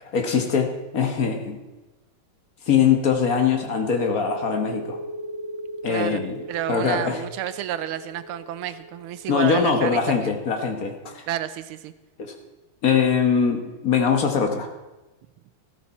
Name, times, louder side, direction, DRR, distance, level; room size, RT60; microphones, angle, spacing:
voice 1, 0.1-1.6 2.7-5.0 5.8-6.4 6.7-7.2 9.3-11.3 12.2-12.3 12.8-14.7, left 6 dB, 45° left, 4 dB, 1.5 m, -22 dB
sound 1, 3.6-10.8, right 1 dB, 20° right, 4.0 m, -37 dB
voice 2, 5.9-6.2 6.5-10.3 11.3-11.9, right 11 dB, 85° right, 13 dB, 1.5 m, -30 dB
13.5 x 12.5 x 4.2 m, 1.1 s
omnidirectional pair, 2.4 m